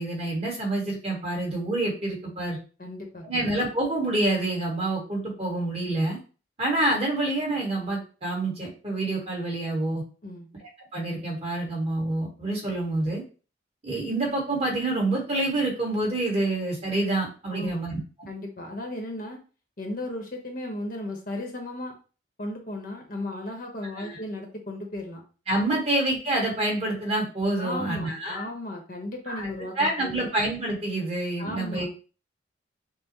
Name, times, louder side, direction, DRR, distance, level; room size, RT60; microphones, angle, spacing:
voice 1, 0.0-2.6 3.2-6.2 6.6-10.0 10.9-13.2 13.8-18.0 23.9-24.2 25.5-28.4 29.3-29.5 29.8-31.9, right 2 dB, 30° right, -2 dB, 1.4 m, -27 dB
voice 2, 2.8-3.4 10.2-10.5 17.5-17.8 18.3-19.4 19.8-21.9 22.4-25.2 27.6-30.3 31.4-31.9, left 1 dB, 45° left, 2 dB, 0.9 m, -35 dB
5.5 x 2.1 x 2.9 m, 0.35 s
head